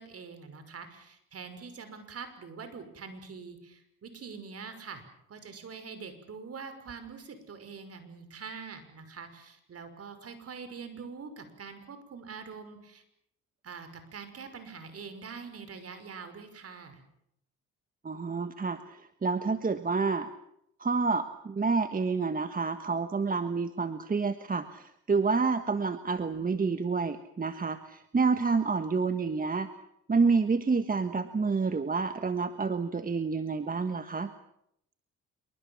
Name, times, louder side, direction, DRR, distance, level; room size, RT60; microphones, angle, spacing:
voice 1, 0.0-5.0 5.3-13.0 13.6-17.0, right 5 dB, 50° right, 9 dB, 5.9 m, -44 dB
voice 2, 18.0-20.3 20.8-29.7 30.1-34.3, right 4 dB, 30° right, 9 dB, 1.5 m, -28 dB
26.5 x 23.5 x 7.3 m, 0.76 s
cardioid pair, 90°, 30 cm